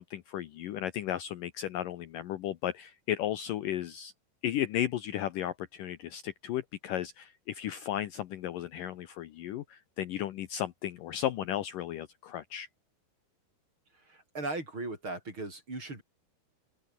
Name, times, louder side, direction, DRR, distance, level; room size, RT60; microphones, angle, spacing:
voice 1, 0.0-4.1 4.4-12.7, left 11 dB, 70° left, 2.3 m, -34 dB
voice 2, 14.1-16.0, right 2 dB, 30° right, 7.2 m, -37 dB
open air
omnidirectional pair, 4.6 m